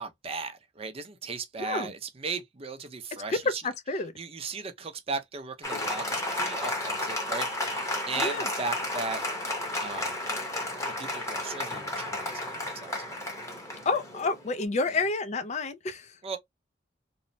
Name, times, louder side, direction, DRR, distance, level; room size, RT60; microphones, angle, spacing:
voice 1, 0.0-3.6 4.2-7.5 7.7-9.4 9.8-10.2 11.0-13.2 16.2-16.4, right 4 dB, 30° right, 0.6 m, -37 dB
voice 2, 1.6-1.9 3.3-3.4 3.6-4.1 8.2-8.5 13.9-16.1, left 3 dB, 40° left, 0.4 m, -29 dB
Applause, 5.6-14.6, left 1 dB, 15° left, 0.9 m, -32 dB
3.1 x 2.0 x 2.6 m
head